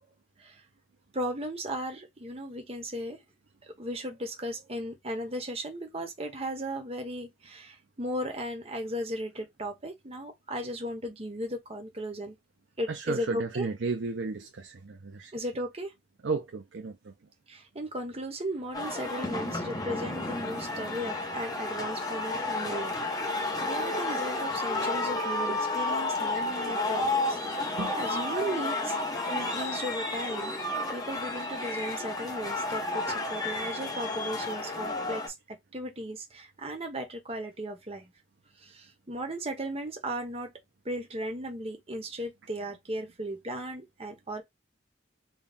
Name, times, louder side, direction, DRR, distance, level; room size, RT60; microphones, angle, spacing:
voice 1, 1.1-3.2 3.8-12.4 12.8-13.7 15.3-15.9 17.5-22.9 23.3-30.5 30.9-38.1 38.6-40.5 40.8-44.4, equal, 30° right, 1.1 m, -36 dB
voice 2, 12.9-15.3 16.2-17.1 27.8-28.0, right 4 dB, 75° right, 0.6 m, -33 dB
sound 1, 18.7-35.3, left 2 dB, 20° left, 0.9 m, -31 dB
4.2 x 2.3 x 3.5 m
head